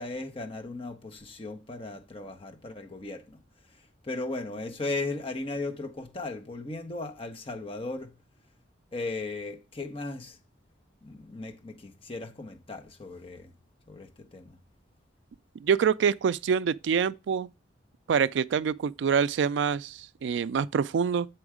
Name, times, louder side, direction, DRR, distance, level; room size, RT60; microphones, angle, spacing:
voice 1, 0.0-3.4 3.7-8.1 8.9-10.4 11.0-13.5 13.9-14.6, left 2 dB, 30° left, 0.9 m, -37 dB
voice 2, 15.6-17.5 18.1-21.3, right 6 dB, 75° right, 0.3 m, -26 dB
7.0 x 4.5 x 4.8 m
head